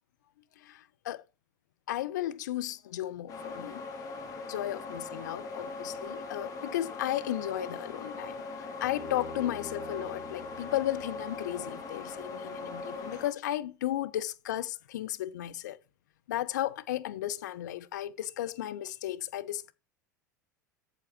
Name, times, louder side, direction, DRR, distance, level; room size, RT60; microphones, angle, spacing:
voice 1, 0.6-1.2 1.9-3.9 4.5-8.4 8.8-15.8 16.3-19.7, left 13 dB, 65° left, 0.8 m, -34 dB
sound 1, 3.3-13.3, left 3 dB, 35° left, 3.1 m, -40 dB
Bowed string instrument, 8.8-12.1, left 2 dB, 10° left, 4.4 m, -47 dB
8.0 x 7.1 x 4.5 m
figure-of-eight pair, 80°, 10 cm